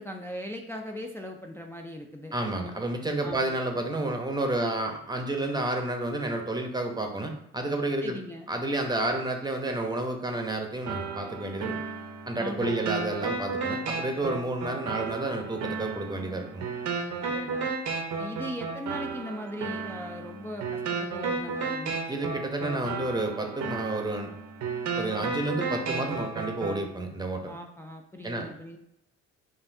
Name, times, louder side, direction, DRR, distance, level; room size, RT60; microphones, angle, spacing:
voice 1, 0.0-2.3 3.2-3.6 8.0-8.5 12.4-12.9 17.2-17.8 18.2-22.4 27.5-28.8, equal, 10° left, 2 dB, 0.3 m, -39 dB
voice 2, 2.3-8.2 8.5-11.8 12.3-16.7 22.1-24.3 25.0-27.5 28.2-28.5, right 2 dB, 15° right, 3 dB, 0.7 m, -30 dB
sound 1, 10.9-26.8, right 4 dB, 70° right, 0.7 m, -33 dB
5.5 x 2.5 x 2.6 m, 0.78 s
cardioid pair, 90°, 30 cm